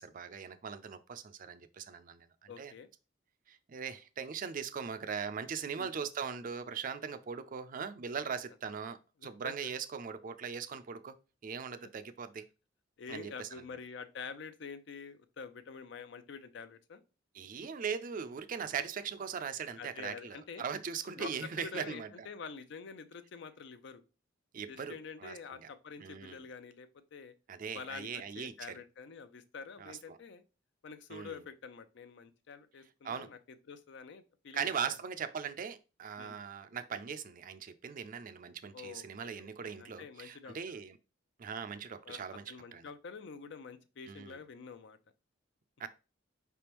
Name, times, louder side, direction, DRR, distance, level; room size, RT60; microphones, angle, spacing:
voice 1, 0.0-2.7 3.5-11.2 11.4-12.5 13.1-13.6 17.3-22.3 24.5-25.7 26.0-26.4 27.5-28.8 29.8-30.2 31.1-31.4 33.0-33.3 34.5-41.0 41.4-42.9 44.1-44.4 45.8-45.9, right 6 dB, 45° right, 0.4 m, -40 dB
voice 2, 2.5-2.9 5.8-5.9 9.2-9.5 13.0-17.0 19.8-20.6 21.2-24.0 24.7-27.3 27.7-30.4 30.8-35.0 36.2-36.4 38.7-40.8 42.0-42.2 42.5-45.0, left 5 dB, 65° left, 0.5 m, -47 dB
5.1 x 3.4 x 2.9 m
head